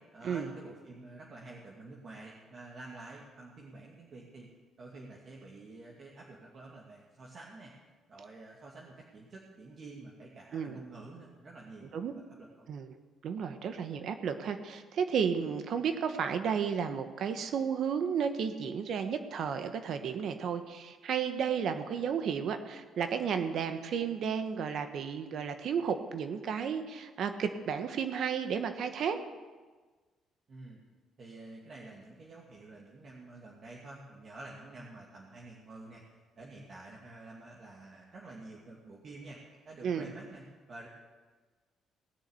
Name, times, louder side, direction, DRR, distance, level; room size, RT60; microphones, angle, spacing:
voice 1, 0.1-4.5 4.8-7.7 8.1-12.7 30.5-30.8 31.2-36.0 36.4-40.9, right 2 dB, 45° right, -3 dB, 2.5 m, -49 dB
voice 2, 10.5-10.8 11.9-12.1 12.7-12.9 13.2-29.2 39.8-40.1, right 7 dB, 65° right, 8 dB, 1.2 m, -33 dB
18.5 x 6.6 x 8.1 m, 1.4 s
cardioid pair, 100°, 0 cm